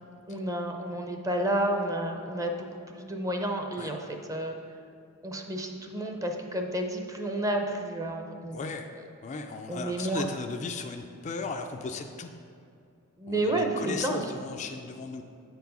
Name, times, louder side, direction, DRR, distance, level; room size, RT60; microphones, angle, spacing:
voice 1, 0.3-2.6 2.9-4.6 5.2-8.7 9.7-10.2 13.2-14.2, right 1 dB, 15° right, 3 dB, 0.6 m, -30 dB
voice 2, 8.5-8.9 9.2-12.3 13.3-15.2, left 4 dB, 35° left, 5 dB, 0.3 m, -36 dB
8.3 x 4.7 x 5.3 m, 2.4 s
head